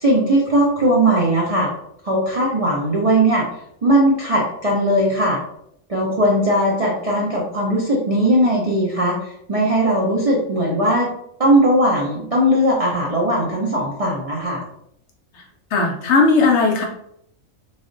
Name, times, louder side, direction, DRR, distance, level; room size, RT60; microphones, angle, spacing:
voice 1, 0.0-1.7 2.0-3.4 3.8-5.4 5.9-9.1 9.5-11.1 11.4-14.6, right 1 dB, 65° right, -4 dB, 0.3 m, -18 dB
voice 2, 15.7-16.8, left 4 dB, 65° left, 1 dB, 0.7 m, -16 dB
3.4 x 2.4 x 2.5 m, 0.73 s
omnidirectional pair, 1.5 m